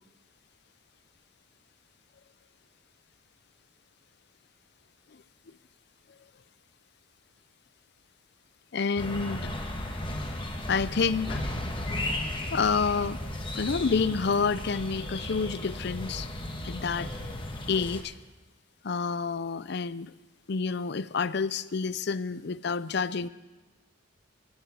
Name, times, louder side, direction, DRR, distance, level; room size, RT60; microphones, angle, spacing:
voice 1, 8.7-9.5 10.7-11.6 12.5-13.2 13.5-16.3 16.6-17.1 17.7-18.1 18.8-20.1 20.5-23.3, left 5 dB, 55° left, 17 dB, 0.5 m, -28 dB
sound 1, 9.0-18.0, left 1 dB, 25° left, 1.5 m, -35 dB
16.5 x 10.5 x 8.3 m, 1.2 s
head